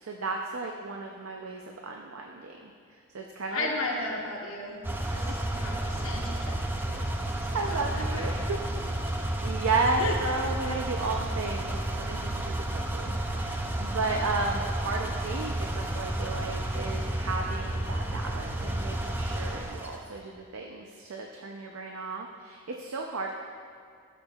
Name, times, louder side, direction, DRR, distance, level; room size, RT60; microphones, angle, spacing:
voice 1, 0.0-2.7 3.1-3.7 5.0-5.4 7.5-8.6 9.4-23.3, right 3 dB, 70° right, 1 dB, 0.5 m, -33 dB
voice 2, 3.5-4.8 5.1-7.1 7.4-8.6 8.9-9.0 10.0-10.2, left 2 dB, 65° left, -4 dB, 1.1 m, -35 dB
sound 1, 4.8-20.0, right 1 dB, 10° right, 0.4 m, -31 dB
sound 2, 6.3-6.7 7.9-8.4 8.8-8.9 9.8-9.9 10.3-10.5 10.7-10.8 11.4-11.5, equal, 40° left, 1.4 m, -51 dB
13.0 x 7.0 x 2.4 m, 2.4 s
head